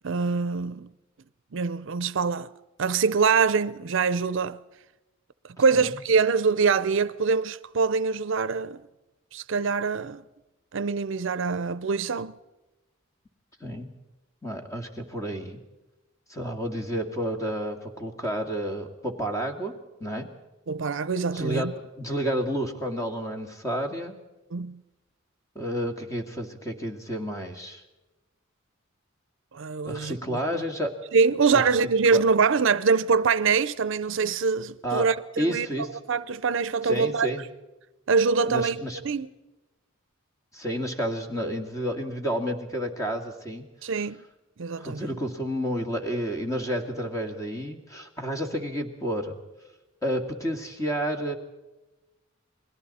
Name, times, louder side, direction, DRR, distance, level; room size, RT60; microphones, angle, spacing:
voice 1, 0.0-0.9 1.5-2.5 2.8-4.6 5.6-8.8 9.3-10.2 10.7-12.3 20.7-21.7 24.5-24.8 29.5-30.6 31.1-35.7 36.1-37.3 38.1-39.3 43.8-44.2 44.6-45.1, right 5 dB, 65° right, 0.6 m, -24 dB
voice 2, 13.6-13.9 14.4-15.6 16.3-19.7 20.0-20.3 21.3-24.1 25.6-27.8 29.8-30.9 31.5-31.6 32.1-32.2 34.8-35.1 35.4-35.9 36.8-37.4 38.5-39.0 40.5-43.7 44.8-49.4 50.0-51.3, equal, 15° left, 2.1 m, -30 dB
29.0 x 21.0 x 4.2 m
head